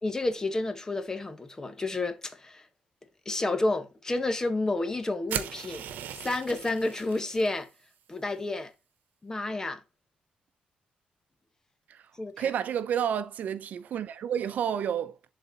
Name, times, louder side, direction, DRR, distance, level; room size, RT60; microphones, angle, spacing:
voice 1, 0.0-2.7 3.2-5.9 6.1-7.7 8.1-8.7 9.2-9.8 12.2-12.5, left 2 dB, 20° left, 1.3 m, -30 dB
sound 1, 5.3-7.5, right 9 dB, 80° right, 1.0 m, -37 dB
voice 2, 12.4-15.3, right 8 dB, 65° right, 0.7 m, -30 dB
11.0 x 4.2 x 4.2 m
cardioid pair, 125°, 3 cm